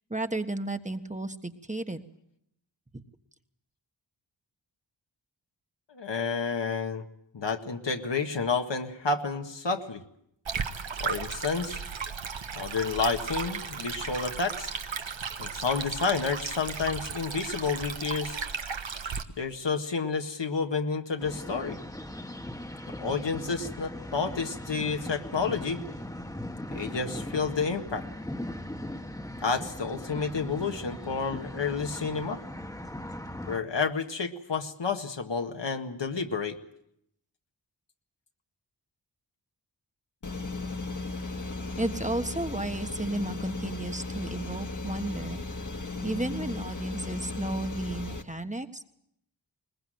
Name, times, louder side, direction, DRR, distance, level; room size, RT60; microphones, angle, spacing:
voice 1, 0.1-2.0 2.9-3.0 41.8-45.4 46.0-48.8, right 2 dB, 15° right, 7 dB, 1.4 m, -33 dB
voice 2, 5.9-7.0 7.3-10.0 11.0-11.8 12.6-14.7 15.4-18.4 19.4-21.8 22.9-25.8 26.7-28.0 29.4-32.4 33.5-36.6, left 4 dB, 70° left, 5 dB, 1.8 m, -30 dB
Stream, 10.4-19.2, right 6 dB, 80° right, 1.4 m, -35 dB
sound 1, 21.2-33.6, left 1 dB, 10° left, 1.4 m, -39 dB
sound 2, 40.2-48.2, left 3 dB, 40° left, 1.8 m, -36 dB
21.5 x 20.0 x 7.8 m, 0.76 s
wide cardioid pair, 60°, 45 cm